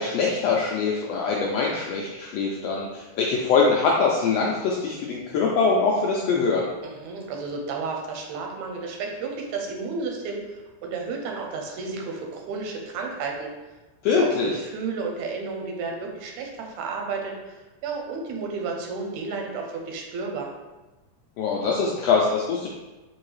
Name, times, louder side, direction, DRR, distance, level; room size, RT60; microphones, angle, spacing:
voice 1, 0.0-6.7 14.0-14.5 21.4-22.7, left 4 dB, 85° left, -2 dB, 1.4 m, -23 dB
voice 2, 6.8-13.5 14.2-20.5, right 4 dB, 85° right, 1 dB, 2.0 m, -32 dB
5.3 x 2.8 x 3.1 m, 1.1 s
omnidirectional pair, 3.3 m